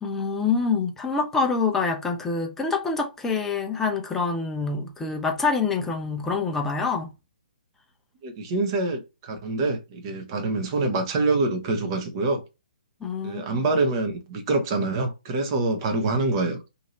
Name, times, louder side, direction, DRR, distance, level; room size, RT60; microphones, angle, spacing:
voice 1, 0.0-7.1 13.0-13.4, left 4 dB, 5° left, 0.5 m, -26 dB
voice 2, 8.2-12.4 13.2-16.6, right 3 dB, 30° right, 0.8 m, -25 dB
2.8 x 2.7 x 4.1 m
figure-of-eight pair, 130°, 5 cm